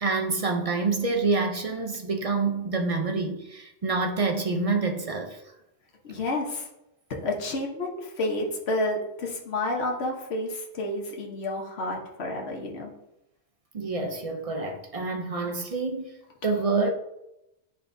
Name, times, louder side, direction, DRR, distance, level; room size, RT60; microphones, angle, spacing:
voice 1, 0.0-5.4 13.7-16.1 16.4-16.9, right 3 dB, 40° right, 0.6 m, -27 dB
voice 2, 6.1-6.7 7.2-12.9, left 2 dB, 70° left, 1.3 m, -30 dB
10.0 x 4.6 x 2.6 m
omnidirectional pair, 1.1 m